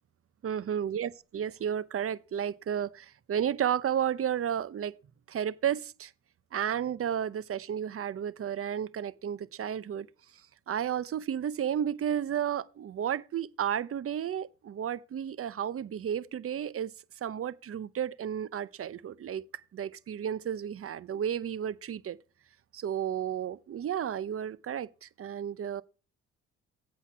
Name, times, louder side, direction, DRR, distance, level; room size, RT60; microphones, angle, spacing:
voice 1, 0.4-4.9 5.3-6.1 6.5-10.1 10.7-16.9 17.2-19.4 19.7-22.2 22.7-25.8, right 9 dB, 50° right, 0.7 m, -32 dB
8.1 x 6.4 x 5.6 m
supercardioid pair, 65°, 29 cm